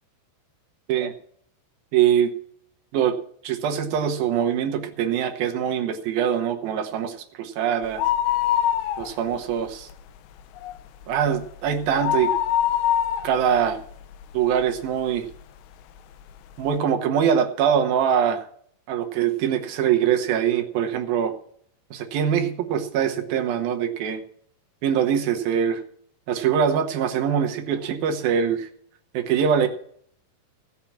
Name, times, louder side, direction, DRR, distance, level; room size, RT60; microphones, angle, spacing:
voice 1, 1.9-2.3 2.9-3.2 3.4-8.0 9.0-9.9 11.1-12.3 13.2-13.8 14.3-15.3 16.6-18.5 18.9-21.3 21.9-24.2 24.8-25.8 26.3-28.7 29.1-29.7, right 8 dB, 70° right, 4 dB, 2.6 m, -23 dB
sound 1, 7.8-9.5 9.8-9.9 10.4-14.8 15.3-15.4 16.2-16.3 16.5-16.6, left 11 dB, 85° left, 2.9 m, -24 dB
16.5 x 5.9 x 7.2 m, 0.63 s
omnidirectional pair, 4.9 m